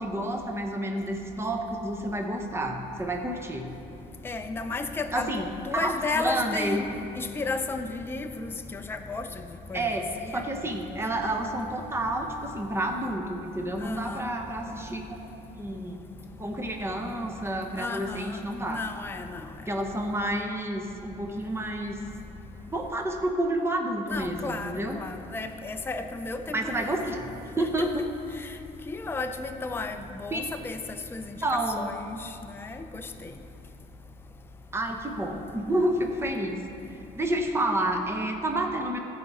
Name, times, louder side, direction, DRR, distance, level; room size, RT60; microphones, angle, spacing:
voice 1, 0.0-3.7 5.1-5.5 5.7-6.9 9.7-10.1 10.3-16.0 16.4-18.8 19.7-22.0 22.7-25.0 26.5-27.3 27.6-28.0 30.3-30.4 31.4-31.9 34.7-36.6 37.1-39.0, right 1 dB, 15° right, 3 dB, 0.9 m, -29 dB
voice 2, 4.2-6.9 7.2-9.3 9.7-10.4 13.8-14.3 17.8-18.4 18.7-19.5 24.1-26.9 27.6-28.1 28.4-28.5 28.9-30.8 31.1-33.3, left 3 dB, 15° left, 6 dB, 0.4 m, -34 dB
14.0 x 4.9 x 4.1 m, 2.9 s
cardioid pair, 110°, 17 cm